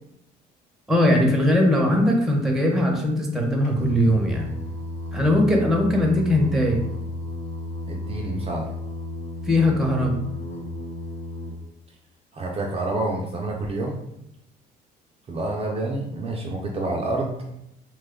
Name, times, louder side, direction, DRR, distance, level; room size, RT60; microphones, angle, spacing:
voice 1, 0.9-4.5 5.1-6.8 9.5-10.2, left 1 dB, ahead, 0 dB, 0.7 m, -20 dB
Singing, 3.6-11.5, left 1 dB, 45° left, 0.7 m, -33 dB
voice 2, 7.9-8.7 12.3-14.0 15.3-17.3, right 2 dB, 35° right, -1 dB, 0.5 m, -28 dB
3.0 x 2.2 x 3.6 m, 0.83 s
cardioid pair, 110°, 17 cm